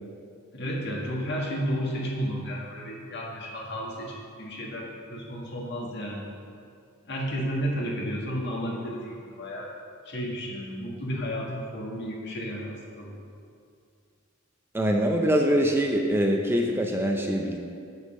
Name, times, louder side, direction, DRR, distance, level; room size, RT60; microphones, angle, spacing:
voice 1, 0.5-6.3 7.0-9.7 10.1-13.2, equal, 55° left, -2 dB, 1.7 m, -32 dB
voice 2, 14.7-17.6, equal, 10° right, 1 dB, 0.5 m, -24 dB
7.1 x 6.6 x 6.4 m, 2.4 s
head